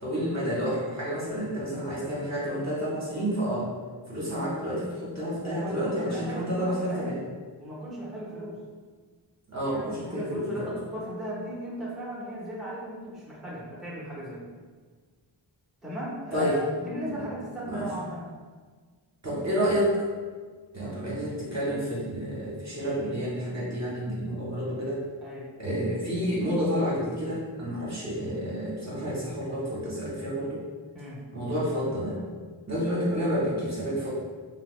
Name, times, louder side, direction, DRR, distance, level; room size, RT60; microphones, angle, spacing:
voice 1, 0.0-3.7 4.1-7.2 9.5-10.7 16.3-16.6 17.1-17.2 17.7-17.9 19.2-20.0 20.7-25.0 25.6-30.6 31.3-32.2 32.7-34.1, equal, 35° right, -7 dB, 0.8 m, -29 dB
voice 2, 5.2-7.1 7.6-8.6 9.6-14.5 15.8-18.3 25.2-25.5 30.9-31.2, right 1 dB, ahead, -7 dB, 0.7 m, -37 dB
2.8 x 2.0 x 3.0 m, 1.5 s
wide cardioid pair, 55°, 48 cm